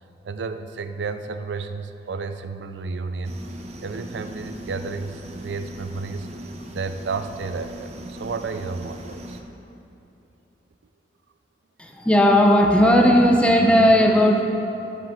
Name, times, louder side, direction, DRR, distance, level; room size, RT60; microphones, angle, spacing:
voice 1, 0.2-3.4 3.8-6.3 6.7-9.4, right 4 dB, 70° right, 9 dB, 0.4 m, -32 dB
sound 1, 3.2-9.4, right 1 dB, 35° right, 0.8 m, -39 dB
voice 2, 11.8-14.4, equal, 5° left, 1 dB, 0.8 m, -16 dB
13.0 x 7.4 x 3.8 m, 2.8 s
head